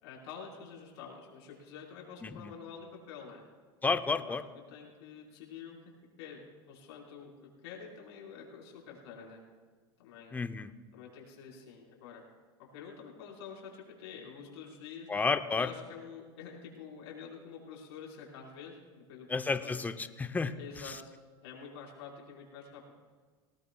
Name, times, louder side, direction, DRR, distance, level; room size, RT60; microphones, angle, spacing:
voice 1, 0.0-3.4 4.1-4.4 4.7-5.8 6.2-9.4 10.0-10.3 10.9-12.2 12.6-15.1 15.6-19.3 19.6-19.8 20.5-21.1 21.4-22.8, left 6 dB, 75° left, -2 dB, 4.6 m, -48 dB
voice 2, 2.2-2.5 3.8-4.4 10.3-10.7 15.1-15.7 19.3-20.6 20.8-21.0, left 4 dB, 10° left, 10 dB, 0.7 m, -31 dB
20.0 x 18.0 x 2.3 m, 1.5 s
supercardioid pair, 110°, 13 cm